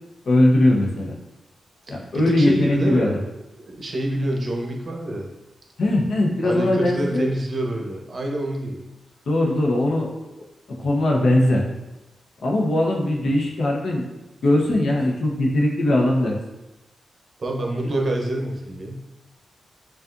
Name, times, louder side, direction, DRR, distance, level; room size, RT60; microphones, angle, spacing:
voice 1, 0.3-1.1 1.9-3.1 5.8-7.3 9.3-10.1 10.7-11.6 12.4-14.0 14.4-16.3, left 1 dB, 75° left, -1 dB, 0.8 m, -20 dB
voice 2, 1.9-3.2 3.6-5.3 6.4-8.8 17.4-19.0, right 1 dB, 55° right, 0 dB, 0.8 m, -27 dB
5.9 x 2.5 x 2.5 m, 1.0 s
cardioid pair, 55°, 0 cm